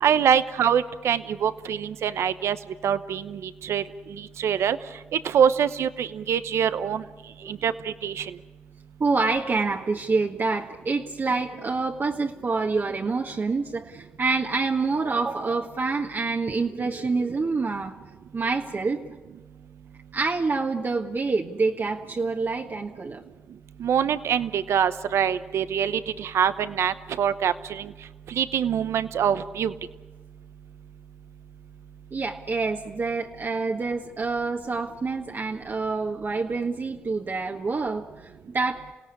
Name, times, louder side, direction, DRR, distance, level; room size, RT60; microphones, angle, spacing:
voice 1, 0.0-2.6 2.8-4.8 5.1-7.0 7.5-8.3 23.8-27.9 28.3-29.7, right 8 dB, 80° right, 13 dB, 0.9 m, -24 dB
voice 2, 9.0-18.0 18.3-19.0 20.1-23.2 32.1-38.9, right 4 dB, 50° right, 1 dB, 1.7 m, -27 dB
27.5 x 17.0 x 9.8 m, 1.2 s
supercardioid pair, 50°, 4 cm